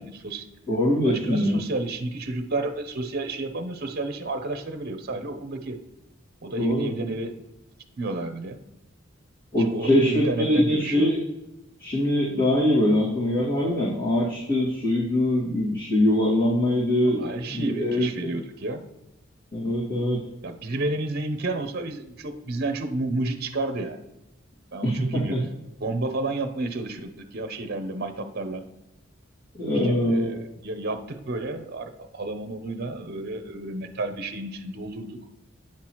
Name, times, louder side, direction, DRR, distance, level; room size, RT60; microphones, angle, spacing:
voice 1, 0.0-0.5 1.0-5.8 6.4-7.3 8.0-8.6 9.6-11.1 17.2-18.8 20.4-24.0 24.7-25.4 25.8-28.6 29.7-35.2, right 2 dB, 50° right, 8 dB, 0.7 m, -31 dB
voice 2, 0.7-1.6 6.6-6.9 9.5-11.2 11.8-18.4 19.5-20.2 24.8-25.4 29.5-30.4, left 1 dB, 45° left, -8 dB, 2.1 m, -23 dB
8.8 x 6.0 x 3.0 m, 0.94 s
head